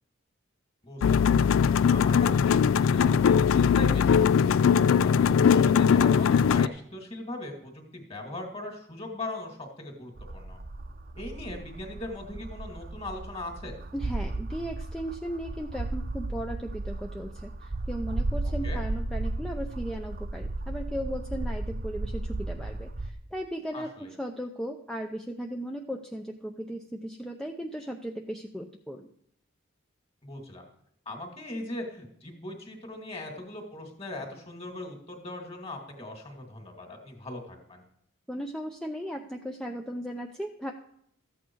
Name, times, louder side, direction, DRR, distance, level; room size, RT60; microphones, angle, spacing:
voice 1, 0.8-1.4 1.9-4.6 5.0-10.6 11.1-13.8 18.6-18.8 23.7-24.1 30.2-30.6 31.1-37.8, left 1 dB, 30° left, 2 dB, 2.3 m, -39 dB
sound 1, 1.0-6.7, left 7 dB, 70° left, 0.3 m, -21 dB
sound 2, 10.2-23.1, right 2 dB, 45° right, 0.8 m, -34 dB
voice 2, 13.9-29.1 38.3-40.7, equal, 5° left, 2 dB, 0.5 m, -36 dB
14.0 x 8.5 x 4.7 m, 0.70 s
head